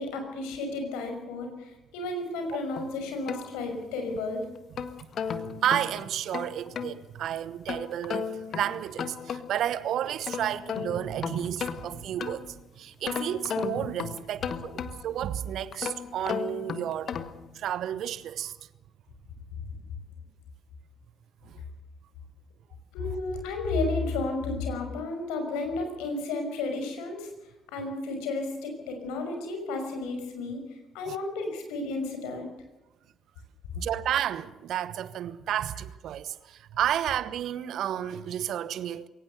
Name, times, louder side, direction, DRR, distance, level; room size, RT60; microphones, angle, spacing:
voice 1, 0.0-4.4 22.9-27.3 27.7-30.6 30.9-32.5, left 3 dB, 65° left, 5.7 m, -32 dB
sound 1, 2.8-4.1 4.6-7.0 7.7-9.7 10.1-12.6 13.1-15.2 15.7-17.5, left 7 dB, 50° left, 1.6 m, -35 dB
voice 2, 5.3-17.1 17.5-18.6 21.4-21.6 31.1-31.2 33.8-39.1, right 10 dB, 55° right, 1.0 m, -31 dB
22.5 x 18.5 x 6.9 m
figure-of-eight pair, 45°, 0 cm